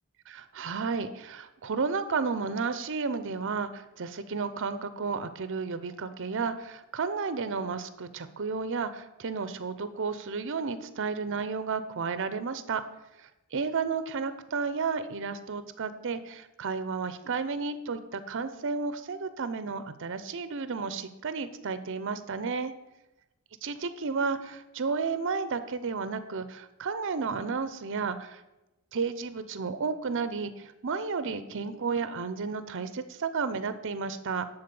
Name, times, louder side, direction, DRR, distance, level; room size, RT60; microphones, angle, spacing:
voice 1, 0.3-12.8 13.2-22.7 23.6-28.4 28.9-34.5, right 5 dB, 60° right, 12 dB, 0.6 m, -32 dB
10.5 x 4.1 x 6.9 m, 0.96 s
head